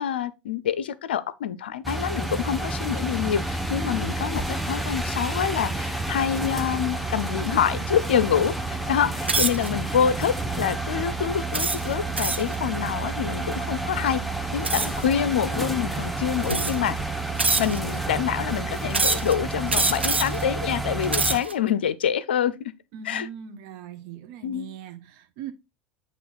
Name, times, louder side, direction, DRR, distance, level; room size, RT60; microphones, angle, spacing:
voice 1, 0.0-14.2 14.5-17.0 17.6-22.7 23.0-23.3 24.4-24.7, left 9 dB, 70° left, 0.5 m, -26 dB
sound 1, 1.8-21.4, right 2 dB, ahead, 0.8 m, -30 dB
sound 2, 9.2-9.7 10.3-10.6 11.5-12.6 14.6-15.0 15.9-16.0 16.4-16.9 17.4-18.0 18.9-19.3 19.7-20.4 20.9-21.5, right 3 dB, 90° right, 0.5 m, -25 dB
voice 2, 22.9-25.5, right 8 dB, 55° right, 0.9 m, -40 dB
8.4 x 3.0 x 4.1 m
figure-of-eight pair, 75°, 6 cm